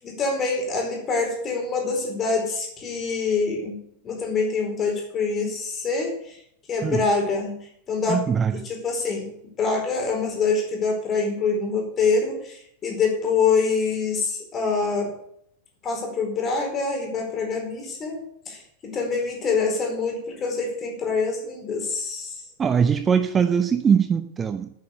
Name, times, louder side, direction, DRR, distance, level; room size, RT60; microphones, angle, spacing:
voice 1, 0.0-6.4 6.7-8.2 8.6-9.3 9.6-15.1 15.8-18.2 18.5-22.4, left 4 dB, 25° left, 2 dB, 4.6 m, -25 dB
voice 2, 8.1-8.7 22.6-24.7, right 7 dB, 20° right, 9 dB, 0.8 m, -21 dB
9.7 x 9.5 x 8.1 m, 0.71 s
figure-of-eight pair, 90°, 0 cm